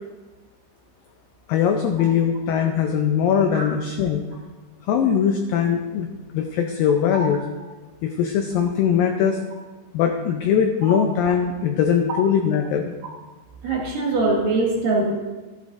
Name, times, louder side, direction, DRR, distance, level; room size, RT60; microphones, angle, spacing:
voice 1, 1.5-4.2 4.9-6.1 6.3-7.4 8.0-9.4 9.9-12.9, left 8 dB, 85° left, 4 dB, 2.0 m, -21 dB
voice 2, 13.6-15.1, right 2 dB, 60° right, -2 dB, 2.9 m, -22 dB
14.5 x 11.5 x 2.6 m, 1.2 s
omnidirectional pair, 4.8 m